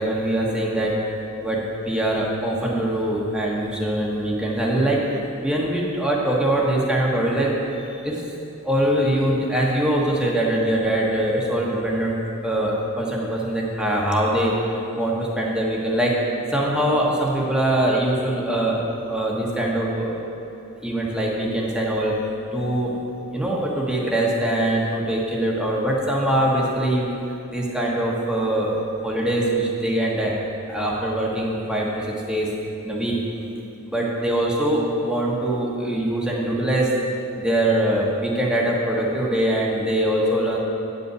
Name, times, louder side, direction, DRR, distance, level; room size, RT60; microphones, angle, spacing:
voice 1, 0.0-8.3 8.6-12.2 12.4-16.2 16.5-18.8 19.1-20.2 20.8-23.0 23.3-27.2 27.5-30.4 30.7-32.5 32.8-33.2 33.9-40.6, right 1 dB, 5° right, -4 dB, 1.3 m, -23 dB
9.1 x 5.5 x 7.9 m, 2.9 s
head